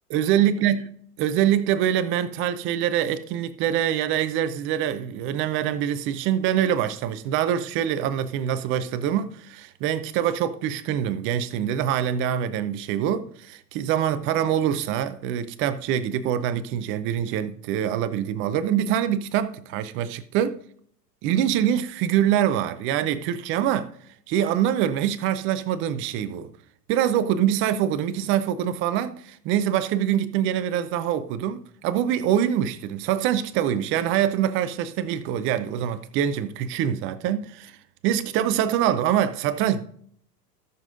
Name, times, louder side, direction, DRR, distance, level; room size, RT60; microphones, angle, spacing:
voice 1, 0.1-0.9 1.2-20.6 21.2-23.9 24.3-26.5 26.9-37.8 38.0-39.8, right 10 dB, 25° right, 0.6 m, -24 dB
17.0 x 6.8 x 2.6 m
figure-of-eight pair, 100°, 48 cm